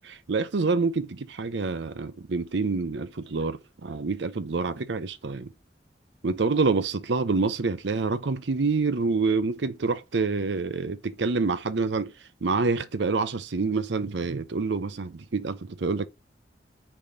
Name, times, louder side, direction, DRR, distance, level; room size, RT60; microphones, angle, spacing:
voice 1, 0.0-5.5 6.2-12.1 12.4-16.1, right 4 dB, 80° right, 0.6 m, -27 dB
6.1 x 4.2 x 3.8 m
head